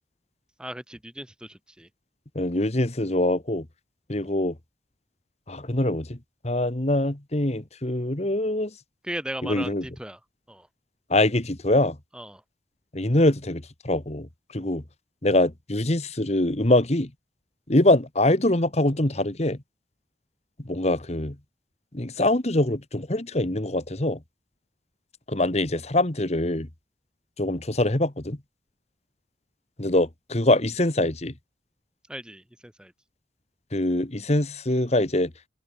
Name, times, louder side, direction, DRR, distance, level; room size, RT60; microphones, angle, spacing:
voice 1, 0.6-1.9 9.0-10.2 10.5-10.7 12.1-12.4 32.1-32.9, right 1 dB, 5° right, 1.3 m, -37 dB
voice 2, 2.3-3.6 4.1-4.5 5.5-6.2 6.4-8.7 9.4-9.9 11.1-12.0 12.9-14.8 15.2-17.1 17.7-19.6 20.6-21.4 21.9-24.2 25.3-26.7 27.4-28.4 29.8-31.3 33.7-35.3, left 1 dB, 35° left, 1.7 m, -24 dB
head